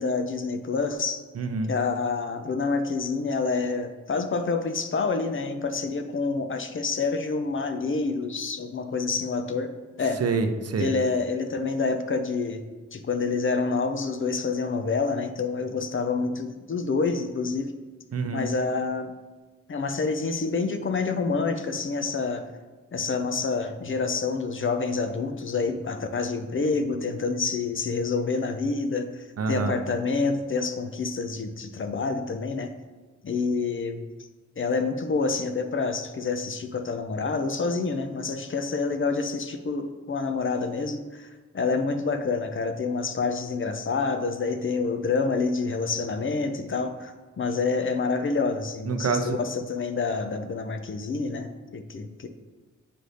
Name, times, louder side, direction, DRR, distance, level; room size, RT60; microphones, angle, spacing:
voice 1, 0.0-1.2 1.7-9.7 10.0-10.2 10.8-12.6 12.9-17.7 18.3-19.1 19.7-22.5 22.9-32.7 33.2-34.0 34.6-41.3 41.5-52.3, left 4 dB, 45° left, 7 dB, 0.4 m, -27 dB
voice 2, 1.4-1.7 10.2-10.9 18.1-18.5 29.4-29.7 48.9-49.4, right 4 dB, 55° right, 7 dB, 0.5 m, -26 dB
7.6 x 2.6 x 4.9 m, 1.3 s
wide cardioid pair, 155°, 30 cm